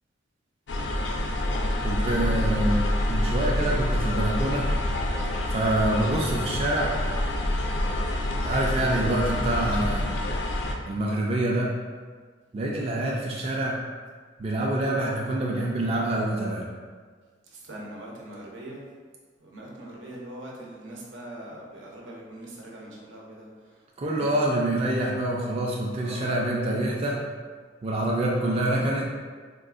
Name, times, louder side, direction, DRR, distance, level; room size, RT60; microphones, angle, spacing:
sound 1, 0.7-10.7, left 1 dB, 70° left, 0.4 m, -27 dB
voice 1, 1.8-4.8 5.5-6.9 8.4-10.1 10.9-11.7 12.5-13.8 14.4-16.7 24.0-27.2 27.8-29.1, right 1 dB, 35° right, -3 dB, 0.3 m, -26 dB
voice 2, 17.5-18.8 19.4-24.3 26.0-26.3, right 1 dB, 90° right, -3 dB, 0.7 m, -42 dB
3.6 x 2.3 x 2.4 m, 1.5 s
head